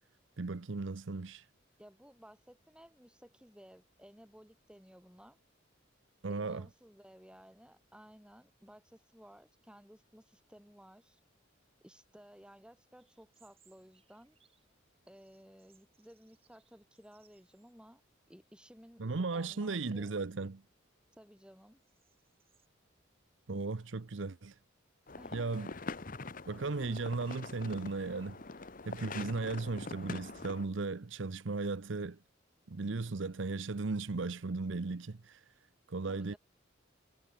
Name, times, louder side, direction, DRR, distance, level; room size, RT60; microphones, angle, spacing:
voice 1, 0.4-1.4 6.2-6.7 19.0-20.6 23.5-24.5 25.3-25.7 26.5-28.4 28.9-32.2 32.7-35.4 35.9-36.3, right 3 dB, 70° right, 0.7 m, -36 dB
voice 2, 1.8-5.4 6.3-11.2 11.8-14.4 15.1-18.0 18.3-19.0 19.3-20.2 21.2-21.8 25.2-25.5 36.1-36.4, equal, 5° right, 7.5 m, -57 dB
sound 1, 13.0-14.7 15.1-17.8 18.1-18.2 19.0-19.4 19.9-22.7, right 8 dB, 30° right, 7.6 m, -73 dB
sound 2, 25.1-30.7, left 3 dB, 45° left, 1.2 m, -44 dB
head